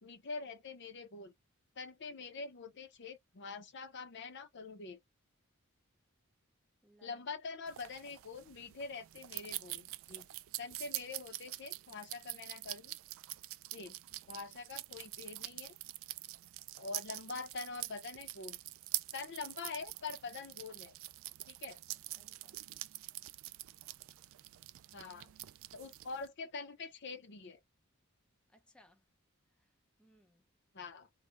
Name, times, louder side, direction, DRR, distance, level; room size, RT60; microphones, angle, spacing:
voice 1, 0.0-1.3 1.8-5.0 7.0-10.3 10.6-13.0 13.7-13.9 14.3-15.8 16.8-18.6 19.1-20.9 21.5-21.8 24.9-25.3 25.7-27.6 30.7-31.1, left 4 dB, 55° left, 0.7 m, -45 dB
voice 2, 6.8-7.2 14.1-14.3 22.1-22.6 25.1-25.4 28.5-29.0 29.6-29.7 30.0-30.4, equal, 5° left, 0.5 m, -67 dB
sound 1, 7.7-26.3, right 17 dB, 65° right, 0.3 m, -45 dB
3.1 x 2.1 x 3.3 m
head